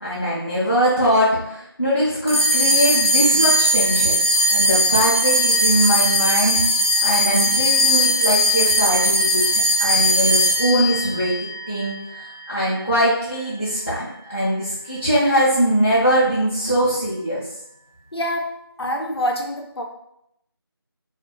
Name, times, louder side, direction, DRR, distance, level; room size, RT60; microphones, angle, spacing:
voice 1, 0.0-4.2 4.5-6.6 7.0-9.5 9.8-11.3 11.7-17.4, equal, 30° left, -9 dB, 0.4 m, -21 dB
sound 1, 2.3-12.9, equal, 35° right, 0.5 m, -19 dB
voice 2, 18.1-18.5 18.8-19.8, equal, 80° left, 3 dB, 0.5 m, -26 dB
2.4 x 2.1 x 2.8 m, 0.78 s
figure-of-eight pair, 180°, 13 cm